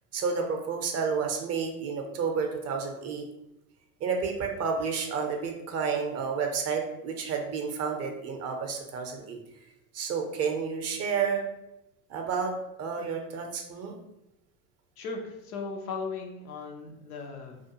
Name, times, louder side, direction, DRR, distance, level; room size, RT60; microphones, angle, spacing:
voice 1, 0.1-3.3 4.0-9.4 9.9-11.4 12.1-12.5 12.8-13.9, right 5 dB, 35° right, 3 dB, 0.5 m, -30 dB
voice 2, 15.0-17.7, left 4 dB, 85° left, 2 dB, 0.6 m, -37 dB
2.4 x 2.1 x 2.8 m, 0.88 s
hypercardioid pair, 80°, 44 cm